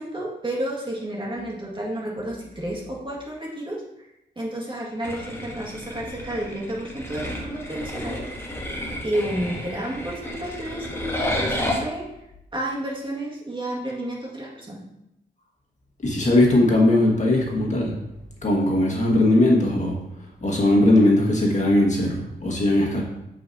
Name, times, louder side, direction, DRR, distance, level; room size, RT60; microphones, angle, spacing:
voice 1, 0.0-3.8 4.4-8.3 9.0-12.1 12.5-14.8, right 1 dB, 25° right, -4 dB, 1.9 m, -31 dB
sound 1, 5.0-11.8, left 1 dB, 15° left, 1.2 m, -31 dB
voice 2, 16.0-17.9 18.4-20.0 20.4-23.0, left 1 dB, 40° left, -2 dB, 1.7 m, -19 dB
7.8 x 4.9 x 2.8 m, 0.87 s
cardioid pair, 60°, 18 cm